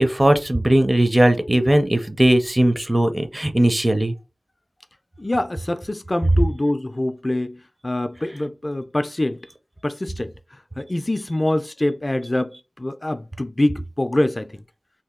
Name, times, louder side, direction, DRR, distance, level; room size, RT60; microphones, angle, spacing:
voice 1, 0.0-4.1, right 1 dB, 25° right, 0.5 m, -18 dB
voice 2, 5.2-9.4 9.8-14.6, left 1 dB, 35° left, 0.3 m, -25 dB
2.8 x 2.6 x 3.6 m
wide cardioid pair, 70°, 0 cm